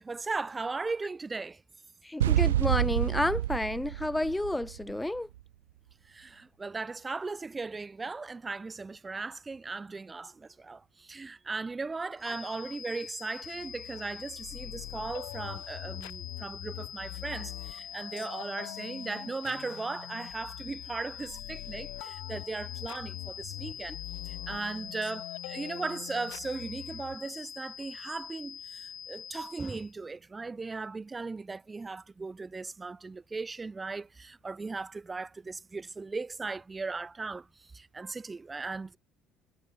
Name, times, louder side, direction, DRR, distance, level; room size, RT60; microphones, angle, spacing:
voice 1, 0.0-1.6 6.1-24.0 24.2-37.5 37.7-39.0, right 3 dB, 25° right, 3.2 m, -37 dB
voice 2, 2.0-5.3, left 1 dB, 10° left, 0.9 m, -30 dB
sound 1, 2.2-5.2, right 13 dB, 80° right, 0.7 m, -28 dB
sound 2, 12.2-29.9, left 7 dB, 40° left, 2.5 m, -44 dB
sound 3, 13.4-27.1, left 40 dB or more, 70° left, 2.3 m, -44 dB
figure-of-eight pair, 55°, 0 cm